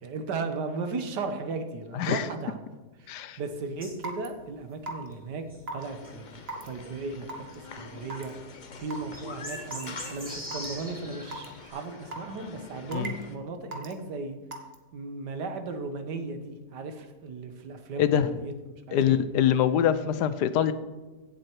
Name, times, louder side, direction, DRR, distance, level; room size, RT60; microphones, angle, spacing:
voice 1, 0.0-2.6 3.0-5.4 5.7-8.3 8.8-14.4 14.9-18.5 18.9-19.2, right 3 dB, 85° right, 7 dB, 1.8 m, -36 dB
voice 2, 1.9-2.3 3.1-3.4 12.9-13.1 18.0-18.3 18.9-20.7, left 9 dB, 80° left, 13 dB, 1.3 m, -24 dB
sound 1, 3.8-4.0 4.5-4.7 5.1-5.2 5.5-5.6 6.0-6.1 6.8-7.0 8.1-8.2 8.8-11.6, equal, 5° right, 3.4 m, -42 dB
Raindrop / Water tap faucet / Drip, 4.0-4.3 4.9-5.1 5.7-5.8 6.5-6.7 7.3-7.6 8.1-8.3 8.9-9.0 9.7-9.9 10.5-10.7 11.3-11.5 12.1-12.4 12.9-13.2 13.7-13.9 14.5-14.8, right 2 dB, 40° right, 1.5 m, -36 dB
sound 2, 5.8-13.4, left 4 dB, 40° left, 0.7 m, -45 dB
16.0 x 7.8 x 4.6 m, 1.2 s
omnidirectional pair, 1.8 m